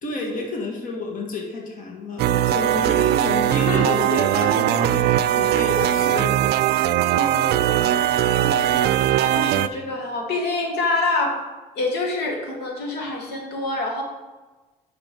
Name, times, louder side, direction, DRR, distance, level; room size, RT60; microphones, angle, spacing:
voice 1, 0.0-5.1 5.3-6.3, left 3 dB, 50° left, 0 dB, 1.8 m, -30 dB
sound 1, 2.2-9.7, right 12 dB, 75° right, 0.4 m, -20 dB
voice 2, 3.1-4.0 6.0-6.2 7.1-8.0 8.2-8.9 9.2-11.3 11.7-14.0, left 2 dB, 75° left, 1 dB, 1.8 m, -27 dB
9.2 x 6.1 x 5.2 m, 1.2 s
cardioid pair, 110°, 17 cm